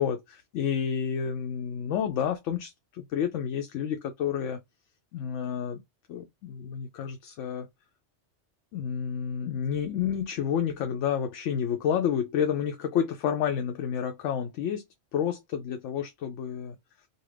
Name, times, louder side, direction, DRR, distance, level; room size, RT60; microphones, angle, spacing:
voice 1, 0.0-4.6 5.1-5.8 6.1-7.7 8.7-14.8 15.1-16.8, left 8 dB, 80° left, 0.9 m, -30 dB
2.7 x 2.5 x 3.2 m
omnidirectional pair, 1.2 m